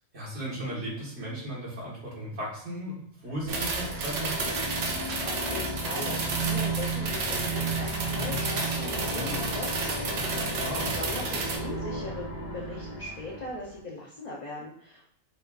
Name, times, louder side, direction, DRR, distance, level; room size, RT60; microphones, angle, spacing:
voice 1, 0.1-4.5 10.6-10.9, right 1 dB, 55° right, -7 dB, 1.6 m, -36 dB
sound 1, 3.3-13.8, right 2 dB, 50° left, 1.1 m, -34 dB
sound 2, 3.5-11.6, right 3 dB, 70° right, 0.9 m, -32 dB
voice 2, 5.2-15.0, left 2 dB, 75° left, -4 dB, 0.3 m, -39 dB
4.1 x 2.3 x 2.3 m, 0.70 s
omnidirectional pair, 1.4 m